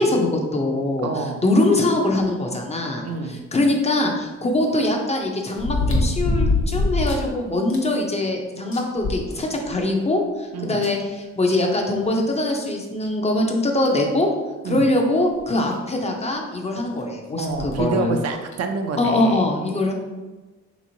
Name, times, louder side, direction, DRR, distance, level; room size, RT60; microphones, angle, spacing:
voice 1, 0.0-14.3 14.6-18.2 19.0-19.9, left 1 dB, 20° left, 1 dB, 0.5 m, -22 dB
voice 2, 1.0-1.4 3.0-3.4 10.5-10.8 14.6-14.9 17.4-19.4, right 4 dB, 55° right, 5 dB, 0.5 m, -27 dB
sound 1, 3.6-3.7 5.6-7.3 7.7-7.8 8.3-8.4 8.7-9.8 10.8-10.9 12.4-12.5 13.0-13.1 13.8-14.1 15.4-15.5 15.7-15.8 17.5-17.8 18.5-18.6, left 2 dB, 45° left, 0.9 m, -23 dB
3.5 x 2.9 x 2.6 m, 1.2 s
cardioid pair, 90°, 30 cm